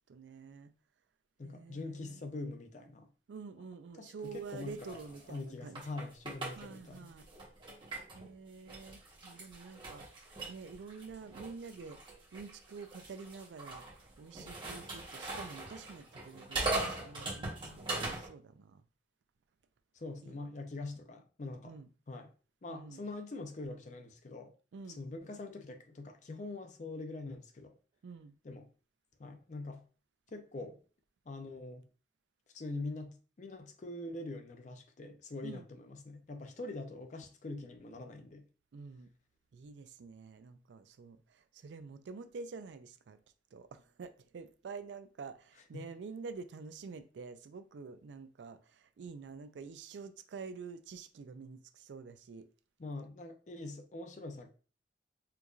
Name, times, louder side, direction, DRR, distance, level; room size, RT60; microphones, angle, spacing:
voice 1, 0.1-0.7 1.4-2.3 3.3-5.9 6.6-7.3 8.1-12.0 12.3-13.8 14.2-18.8 20.2-20.5 21.6-21.9 22.7-23.1 24.7-25.0 28.0-28.4 35.4-35.6 38.7-39.1 39.5-43.2 43.5-52.5, right 5 dB, 80° right, 0.4 m, -48 dB
voice 2, 1.4-3.1 4.0-5.0 5.3-7.1 19.9-21.7 22.1-22.3 22.6-24.5 25.0-27.7 28.4-28.7 29.2-29.9 30.3-30.8 31.3-31.8 32.5-38.4 45.7-45.9 52.8-54.5, left 2 dB, 40° left, 0.5 m, -44 dB
sound 1, 4.2-8.3 8.7-18.3, right 2 dB, 25° right, 1.0 m, -41 dB
4.4 x 2.6 x 2.3 m
head